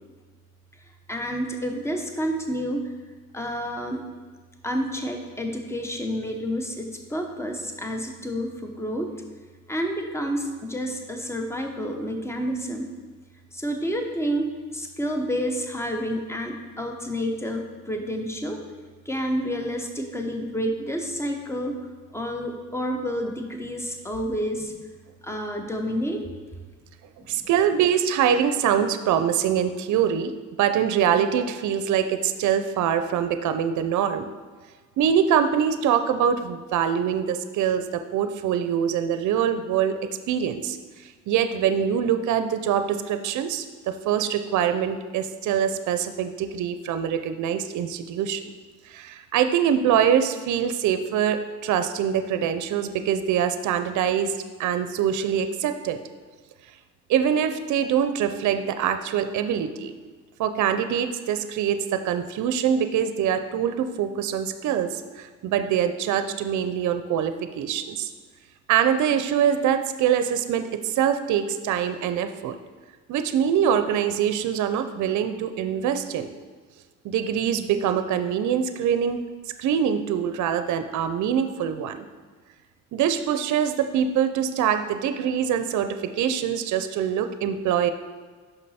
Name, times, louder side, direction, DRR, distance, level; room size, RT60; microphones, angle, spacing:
voice 1, 1.1-2.9 3.3-4.0 4.6-9.1 9.7-12.9 13.5-18.6 19.1-21.8 22.1-24.8 25.2-26.2 27.2-27.5, equal, 10° left, 4 dB, 0.8 m, -29 dB
voice 2, 27.3-30.3 30.6-34.3 35.0-48.4 48.9-54.3 54.6-56.0 57.1-59.9 60.4-68.1 68.7-72.6 73.1-76.3 77.0-79.2 79.6-82.0 82.9-87.9, right 8 dB, 75° right, 9 dB, 0.5 m, -24 dB
6.0 x 5.3 x 4.2 m, 1.5 s
cardioid pair, 90°, 30 cm